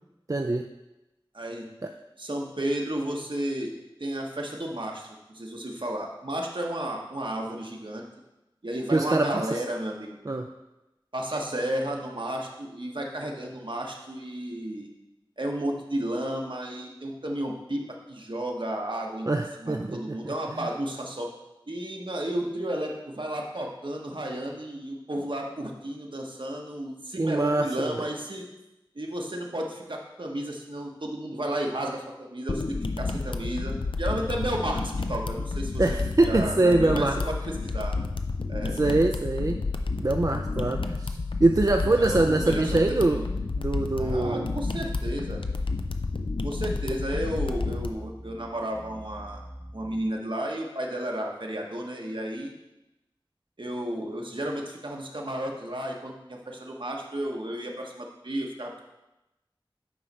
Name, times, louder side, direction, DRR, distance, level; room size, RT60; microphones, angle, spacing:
voice 1, 0.3-0.7 1.8-1.9 8.9-9.6 10.3-10.5 19.3-20.0 20.2-20.3 27.2-28.1 35.8-37.2 38.8-39.6 40.0-43.2 43.6-44.5, right 2 dB, 40° right, 4 dB, 0.4 m, -24 dB
voice 2, 1.3-1.7 2.2-3.7 4.0-8.0 8.6-10.2 11.1-14.9 15.4-19.3 19.6-21.3 21.7-28.4 28.9-32.6 33.0-35.8 36.2-37.3 37.6-37.9 38.5-39.0 41.9-43.3 44.0-45.4 46.4-49.4 49.7-52.5 53.6-58.8, right 1 dB, 65° right, 0 dB, 1.1 m, -33 dB
sound 1, 32.5-47.9, left 3 dB, 75° left, 0.4 m, -30 dB
sound 2, 44.6-50.1, equal, 10° right, 0.7 m, -44 dB
8.7 x 3.2 x 5.3 m, 0.96 s
wide cardioid pair, 40°, 9 cm